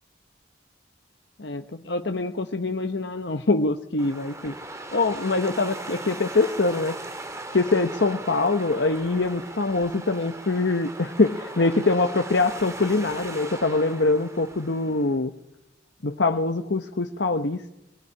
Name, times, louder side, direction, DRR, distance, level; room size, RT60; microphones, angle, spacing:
voice 1, 1.4-4.5 4.9-7.0 7.5-15.3 16.0-17.7, left 3 dB, 75° left, 6 dB, 1.1 m, -24 dB
sound 1, 4.0-15.2, right 2 dB, 15° right, 2.2 m, -38 dB
22.0 x 19.0 x 9.9 m, 0.93 s
head